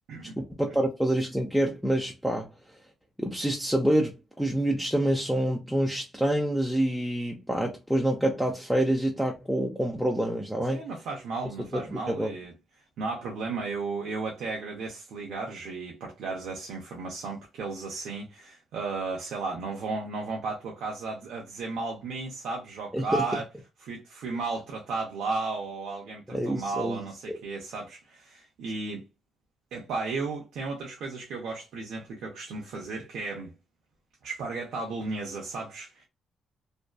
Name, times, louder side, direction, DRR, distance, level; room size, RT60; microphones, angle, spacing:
voice 1, 0.5-2.5 3.2-10.9 11.6-12.3 22.9-23.2 26.3-27.0 27.3-27.4, right 1 dB, ahead, 0.5 m, -27 dB
voice 2, 10.7-12.5 13.0-23.4 23.8-29.0 29.7-33.5 34.2-36.1, right 3 dB, 75° right, 0.7 m, -34 dB
2.6 x 2.2 x 2.2 m
cardioid pair, 90°, 0 cm